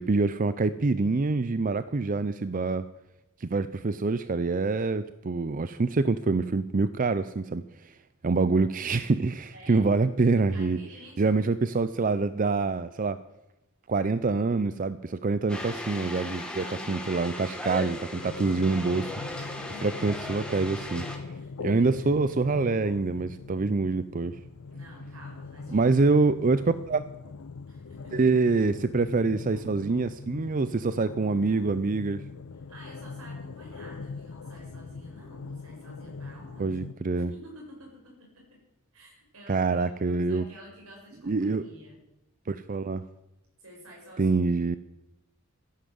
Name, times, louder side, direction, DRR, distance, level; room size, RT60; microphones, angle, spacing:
voice 1, 0.0-2.9 3.4-7.9 8.2-10.8 11.2-13.2 13.9-19.5 19.8-21.0 21.6-24.4 25.7-27.0 28.1-32.2 36.6-37.3 39.5-40.4 41.3-41.6 42.5-43.0 44.2-44.8, right 3 dB, 40° right, 14 dB, 0.5 m, -26 dB
voice 2, 9.5-9.8 10.5-11.4 16.5-17.1 19.7-20.1 21.3-22.2 24.7-25.9 26.5-26.6 27.7-28.3 32.5-36.8 37.1-38.6 38.9-42.0 43.6-44.4, equal, 80° right, -2 dB, 7.7 m, -50 dB
sound 1, 15.5-21.2, left 1 dB, 5° left, 1.8 m, -37 dB
sound 2, 18.1-36.9, left 4 dB, 75° left, 0.5 m, -42 dB
14.0 x 10.5 x 7.8 m, 0.95 s
head